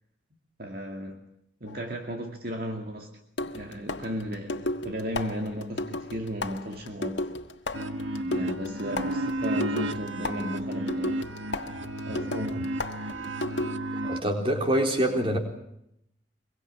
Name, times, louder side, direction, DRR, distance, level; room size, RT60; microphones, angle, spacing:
voice 1, 0.6-1.3 1.6-7.3 8.2-11.2 12.0-12.7, equal, 50° right, 2.3 m, -35 dB
sound 1, 1.7-1.9 3.4-14.0, left 2 dB, 70° left, 1.6 m, -35 dB
sound 2, 7.7-14.2, right 1 dB, 80° right, 1.4 m, -32 dB
voice 2, 14.0-15.4, right 1 dB, 30° right, 4.0 m, -25 dB
24.0 x 23.0 x 7.6 m
head